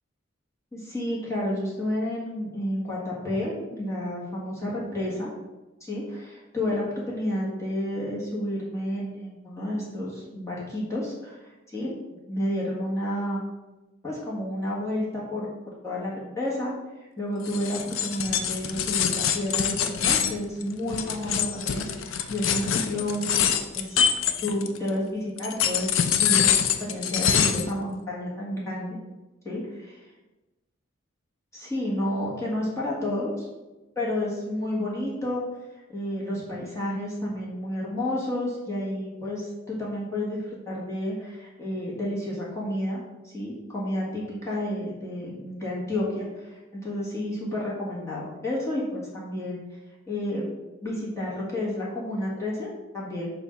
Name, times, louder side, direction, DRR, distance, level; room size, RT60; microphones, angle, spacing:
voice 1, 0.7-5.3 5.9-11.9 12.3-13.4 14.0-15.5 15.8-16.7 17.2-24.1 24.4-29.0 29.4-29.9 31.5-33.5 33.9-35.4 35.9-49.6 50.1-50.4 50.8-53.3, left 1 dB, 15° left, -6 dB, 1.5 m, -31 dB
sound 1, 17.4-24.9 25.4-27.7, left 8 dB, 80° left, 0.5 m, -25 dB
7.1 x 2.7 x 5.7 m, 1.1 s
head